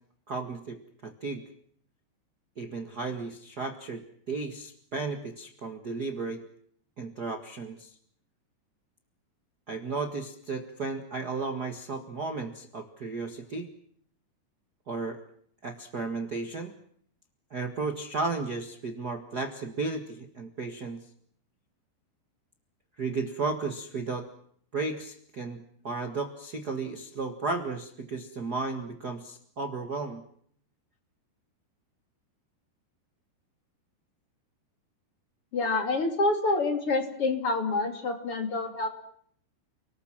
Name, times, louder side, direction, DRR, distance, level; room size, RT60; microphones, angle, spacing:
voice 1, 0.3-1.4 2.6-6.4 7.0-7.9 9.7-13.7 14.9-15.2 15.6-16.7 17.5-21.0 23.0-24.3 24.7-30.2, right 3 dB, 70° right, 6 dB, 0.9 m, -34 dB
voice 2, 35.5-38.9, left 3 dB, 35° left, 6 dB, 3.2 m, -27 dB
30.0 x 19.5 x 7.5 m, 0.63 s
omnidirectional pair, 5.0 m